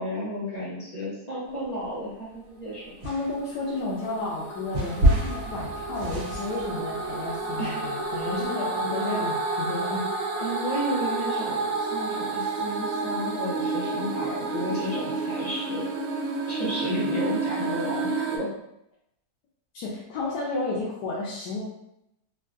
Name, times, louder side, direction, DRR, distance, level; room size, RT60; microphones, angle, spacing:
voice 1, 0.0-2.8 7.6-7.8 8.1-8.3 10.4-15.9 16.5-18.5, equal, 40° left, -9 dB, 0.6 m, -32 dB
sound 1, 1.6-2.4 3.0-8.3, right 1 dB, 65° right, 1.1 m, -28 dB
voice 2, 3.0-10.0 19.7-21.6, left 2 dB, 85° left, -6 dB, 1.2 m, -32 dB
sound 2, 3.2-18.4, right 3 dB, 80° right, 1.2 m, -30 dB
3.6 x 2.2 x 2.4 m, 0.83 s
omnidirectional pair, 1.7 m